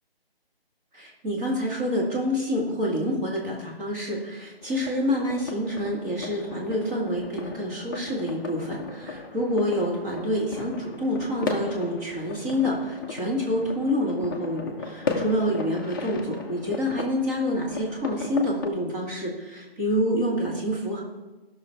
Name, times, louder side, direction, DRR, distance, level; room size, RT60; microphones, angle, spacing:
voice 1, 0.9-21.0, equal, 15° right, -3 dB, 2.2 m, -27 dB
sound 1, 4.6-18.7, left 4 dB, 20° left, 0.8 m, -36 dB
15.5 x 6.4 x 4.6 m, 1.2 s
figure-of-eight pair, 155°, 30 cm